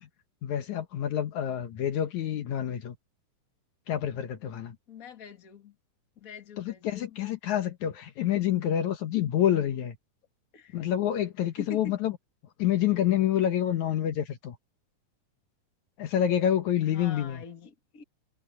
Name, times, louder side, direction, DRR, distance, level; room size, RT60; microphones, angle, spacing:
voice 1, 0.4-3.0 3.9-4.8 6.6-10.0 10.7-12.2 12.6-14.6 16.0-17.4, left 11 dB, 70° left, 2.5 m, -27 dB
voice 2, 4.9-5.7 6.2-7.2 10.5-10.8 11.6-11.9 16.9-18.0, left 5 dB, 30° left, 2.0 m, -45 dB
omnidirectional pair, 3.7 m